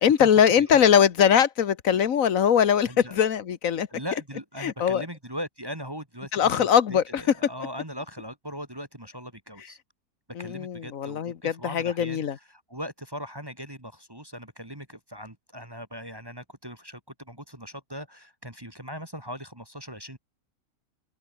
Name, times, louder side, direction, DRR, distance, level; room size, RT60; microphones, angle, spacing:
voice 1, 0.0-3.9 4.6-5.0 6.3-7.2 10.4-12.4, left 8 dB, 65° left, 1.5 m, -21 dB
voice 2, 2.8-3.2 3.9-9.8 10.4-20.2, equal, 15° right, 2.6 m, -39 dB
omnidirectional pair, 1.6 m